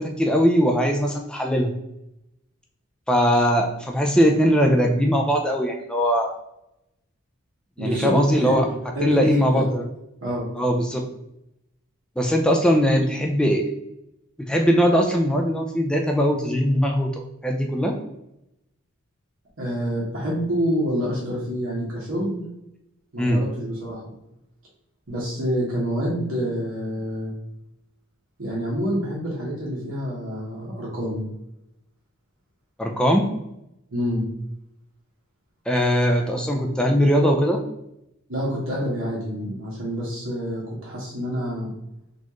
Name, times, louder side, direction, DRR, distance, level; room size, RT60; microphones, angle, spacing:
voice 1, 0.0-1.7 3.1-6.3 7.8-8.7 9.0-9.8 10.6-11.0 12.2-13.6 14.4-18.0 23.2-23.4 32.8-33.3 35.7-37.6, equal, 5° left, 2 dB, 0.3 m, -20 dB
voice 2, 7.8-9.7 10.2-10.5 19.6-22.4 23.1-24.0 25.1-27.3 28.4-31.2 33.9-34.2 38.3-41.7, equal, 65° right, -6 dB, 1.1 m, -27 dB
4.2 x 2.4 x 3.0 m, 0.85 s
head